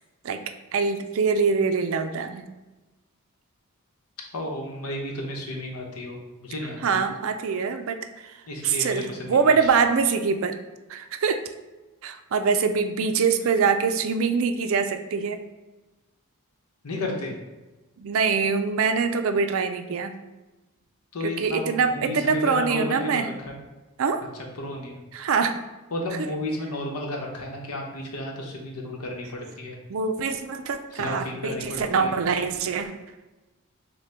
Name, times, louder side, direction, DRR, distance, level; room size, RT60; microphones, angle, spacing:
voice 1, 0.7-2.5 6.8-8.3 8.6-10.5 10.9-11.4 12.0-15.4 18.0-20.1 21.2-23.3 24.0-24.2 25.1-25.6 26.2-26.3 29.9-32.9, right 5 dB, 60° right, 8 dB, 0.4 m, -24 dB
voice 2, 4.3-7.0 8.5-9.7 16.8-17.3 21.1-23.6 24.5-25.0 25.9-29.8 30.9-32.1, left 1 dB, 80° left, 0 dB, 0.9 m, -33 dB
6.4 x 2.2 x 3.4 m, 1.1 s
head